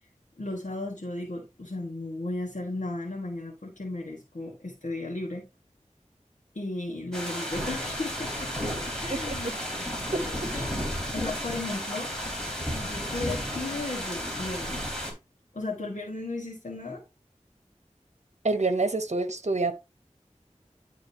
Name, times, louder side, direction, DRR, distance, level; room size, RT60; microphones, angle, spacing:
voice 1, 0.4-5.4 6.5-10.8 11.1-12.1 12.6-14.9 15.5-17.0, left 2 dB, 80° left, 1.6 m, -35 dB
sound 1, 7.1-15.1, equal, 5° left, 3.1 m, -33 dB
voice 2, 18.4-19.7, right 3 dB, 60° right, 0.9 m, -26 dB
11.0 x 3.8 x 2.8 m
wide cardioid pair, 45°, 13 cm